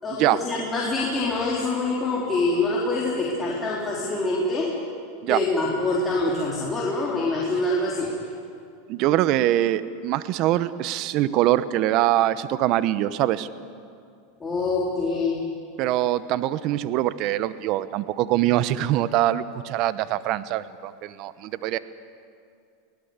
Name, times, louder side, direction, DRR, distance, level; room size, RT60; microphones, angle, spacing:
voice 1, 0.0-4.8 5.3-8.2 14.4-15.4, left 2 dB, 15° left, -5 dB, 4.0 m, -25 dB
voice 2, 8.9-13.5 15.8-21.8, right 14 dB, 50° right, 15 dB, 0.9 m, -23 dB
24.0 x 18.0 x 8.2 m, 2.4 s
supercardioid pair, 120°, 0 cm